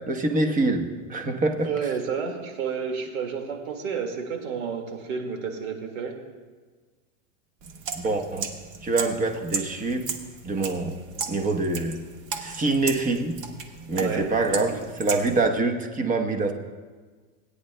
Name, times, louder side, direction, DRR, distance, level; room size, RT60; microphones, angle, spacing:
voice 1, 0.1-1.7 8.0-8.5 8.8-10.1 10.4-11.0 11.3-12.0 12.4-13.4 13.9-16.5, right 3 dB, 20° right, 5 dB, 1.0 m, -25 dB
voice 2, 1.6-6.1 13.9-14.8, right 6 dB, 75° right, 3 dB, 2.1 m, -31 dB
sound 1, 7.6-15.5, right 6 dB, 50° right, 1.3 m, -36 dB
20.0 x 9.5 x 2.2 m, 1.4 s
supercardioid pair, 120°, 41 cm